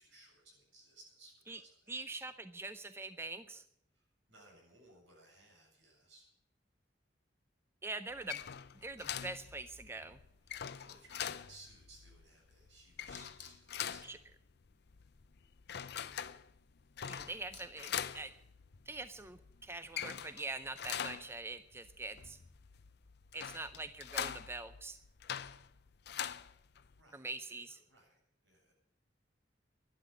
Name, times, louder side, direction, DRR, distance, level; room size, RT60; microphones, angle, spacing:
voice 1, 0.0-1.9 3.9-6.3 10.4-14.2 27.0-28.7, right 2 dB, 80° right, 0 dB, 7.8 m, -61 dB
voice 2, 1.9-3.6 7.8-8.4 8.8-10.2 14.0-14.2 17.0-18.3 18.9-22.4 23.3-25.0 27.1-27.8, right 3 dB, 15° right, 11 dB, 0.5 m, -44 dB
sound 1, 8.1-27.0, left 9 dB, 60° left, 0.6 m, -44 dB
12.0 x 11.5 x 8.4 m, 0.74 s
head